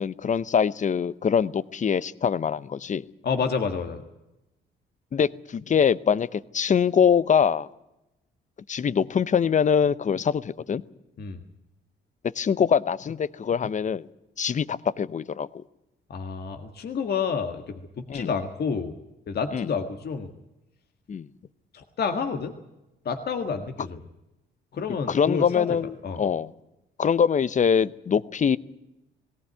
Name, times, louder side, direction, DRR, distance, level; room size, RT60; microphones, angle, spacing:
voice 1, 0.0-3.0 5.1-7.7 8.7-10.8 12.3-14.1 14.4-15.6 18.1-18.3 19.5-19.7 21.1-21.3 25.1-26.5 27.0-28.6, left 7 dB, 40° left, 18 dB, 0.7 m, -23 dB
voice 2, 3.2-4.0 11.2-11.4 16.1-19.0 19.3-20.3 21.7-22.5 23.0-24.0 24.7-25.7 26.0-26.2, left 5 dB, 55° left, 6 dB, 1.7 m, -29 dB
18.0 x 17.5 x 9.5 m, 0.93 s
cardioid pair, 90°, 20 cm